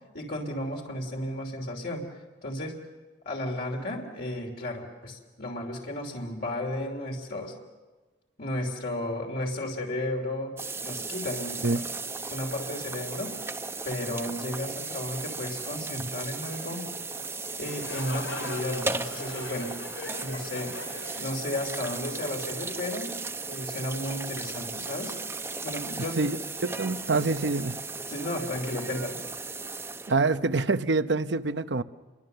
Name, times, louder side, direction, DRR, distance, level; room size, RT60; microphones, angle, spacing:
voice 1, 0.1-2.1 2.4-2.8 3.2-7.5 8.4-11.9 12.3-13.5 13.8-16.9 17.6-19.7 20.2-20.8 21.2-23.1 23.5-25.2 25.6-26.2 28.1-29.2, left 1 dB, 55° left, 3.0 m, -33 dB
sound 1, 10.6-30.1, right 3 dB, 15° right, 0.7 m, -36 dB
sound 2, 17.5-23.2, left 3 dB, 85° left, 2.7 m, -41 dB
voice 2, 26.6-27.8 30.1-31.8, right 3 dB, 70° right, 0.8 m, -26 dB
29.0 x 23.5 x 6.8 m
head